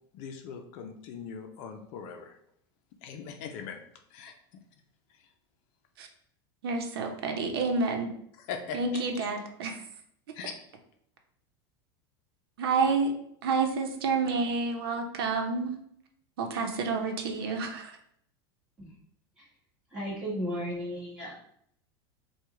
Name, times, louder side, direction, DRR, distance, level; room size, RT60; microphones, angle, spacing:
voice 1, 0.1-2.4 3.0-3.8 4.1-4.4 8.3-9.3 10.3-10.5, left 6 dB, 50° left, 4 dB, 0.6 m, -40 dB
voice 2, 6.6-8.1 8.7-9.8 12.6-13.1 13.4-15.8 16.4-17.9, right 4 dB, 90° right, 4 dB, 0.8 m, -29 dB
voice 3, 19.9-21.3, equal, 5° right, -8 dB, 1.8 m, -34 dB
4.6 x 2.4 x 4.7 m, 0.70 s
supercardioid pair, 155°, 12 cm